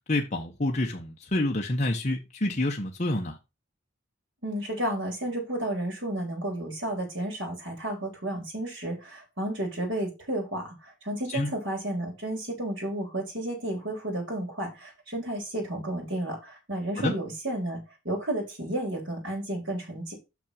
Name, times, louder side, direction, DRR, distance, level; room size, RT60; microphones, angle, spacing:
voice 1, 0.1-3.4 11.3-11.5 17.0-17.1, left 1 dB, 35° left, 1.0 m, -28 dB
voice 2, 4.4-17.8 18.0-20.1, right 1 dB, 65° right, 3.8 m, -32 dB
6.0 x 5.9 x 5.1 m
head